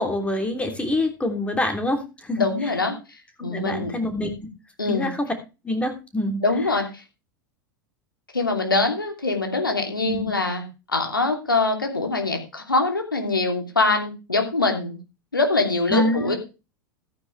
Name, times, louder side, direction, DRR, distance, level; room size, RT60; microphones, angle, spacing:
voice 1, 0.0-2.7 3.4-4.3 4.9-5.3 5.6-6.4 10.1-10.3 15.9-16.4, left 1 dB, 10° left, 5 dB, 3.2 m, -26 dB
voice 2, 2.4-3.0 3.4-3.9 4.8-5.1 6.4-7.0 8.3-14.9 15.3-16.4, left 3 dB, 85° left, 4 dB, 2.9 m, -23 dB
13.5 x 9.5 x 3.3 m, 0.29 s
figure-of-eight pair, 85°, 11 cm